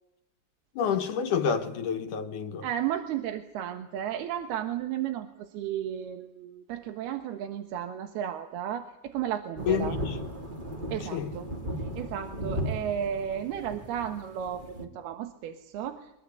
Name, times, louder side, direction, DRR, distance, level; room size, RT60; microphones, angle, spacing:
voice 1, 0.8-2.7 9.7-10.2 11.1-11.3, left 7 dB, 65° left, 2.5 m, -28 dB
voice 2, 2.6-10.0 10.9-11.4 11.8-16.1, right 10 dB, 80° right, 3.3 m, -34 dB
sound 1, 9.6-14.8, equal, 15° right, 1.9 m, -36 dB
24.0 x 21.0 x 8.4 m
omnidirectional pair, 4.5 m